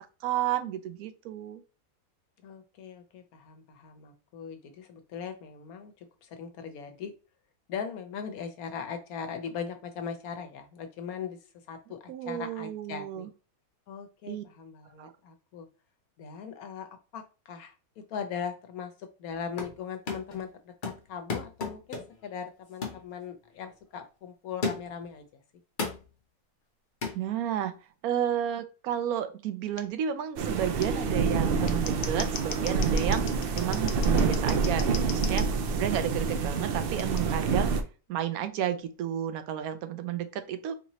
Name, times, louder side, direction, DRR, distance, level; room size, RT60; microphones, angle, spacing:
voice 1, 0.2-1.6 12.1-13.3 14.3-14.4 15.0-15.1 27.1-27.8 28.0-33.3 33.6-37.8 38.1-40.7, right 10 dB, 90° right, 9 dB, 1.1 m, -32 dB
voice 2, 2.4-7.1 7.7-11.4 11.7-13.3 13.9-15.7 16.2-25.3, left 7 dB, 90° left, 7 dB, 1.2 m, -40 dB
sound 1, 19.3-19.8 20.1-20.4 20.8-22.3 22.8-23.1 23.6-23.7 24.6-25.1 25.8-26.1 27.0-27.2, left 4 dB, 40° left, 0.9 m, -34 dB
Scissors, 29.8-29.9 30.8-30.9 31.5-35.5 37.0-37.2, left 8 dB, 65° left, 0.6 m, -39 dB
sound 2, 30.4-37.8, right 4 dB, 65° right, 0.5 m, -27 dB
4.0 x 2.7 x 3.0 m, 0.33 s
omnidirectional pair, 1.5 m